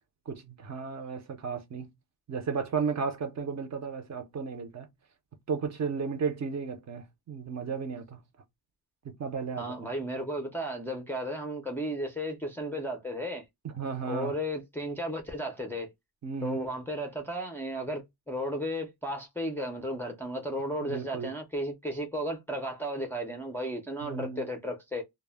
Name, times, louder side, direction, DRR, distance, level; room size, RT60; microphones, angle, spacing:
voice 1, 0.3-1.9 2.3-4.9 5.5-8.2 9.0-9.9 13.6-14.3 16.2-16.8 20.8-21.3 24.0-24.5, right 5 dB, 45° right, 0.5 m, -34 dB
voice 2, 9.6-13.4 14.0-15.9 16.4-25.0, equal, 5° left, 0.4 m, -34 dB
2.1 x 2.0 x 3.3 m
wide cardioid pair, 165°, 38 cm